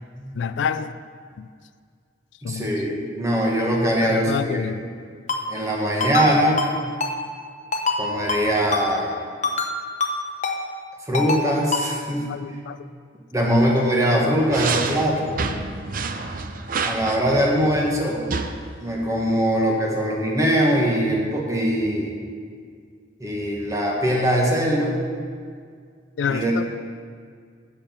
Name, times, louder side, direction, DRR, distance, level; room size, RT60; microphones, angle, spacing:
voice 1, 0.3-0.9 1.4-1.5 2.4-2.7 4.0-4.8 12.3-12.8 13.5-13.6 26.2-26.6, left 6 dB, 80° left, 12 dB, 0.3 m, -27 dB
voice 2, 2.4-4.9 5.5-6.6 8.0-9.2 11.0-12.3 13.3-15.3 16.8-18.2 18.8-22.1 23.2-24.9 26.3-26.6, equal, 20° right, -2 dB, 1.3 m, -22 dB
Ringtone, 5.3-5.4 6.0-6.3 6.6-6.7 7.0-7.1 7.7-8.0 8.3-8.4 8.7-8.9 9.4-9.7 10.0-10.1 10.4-10.6 11.1-11.4 11.7-11.9, left 4 dB, 40° left, 0.9 m, -24 dB
sound 1, 14.4-18.5, right 4 dB, 50° right, 0.6 m, -29 dB
8.5 x 7.1 x 5.7 m, 2.1 s
head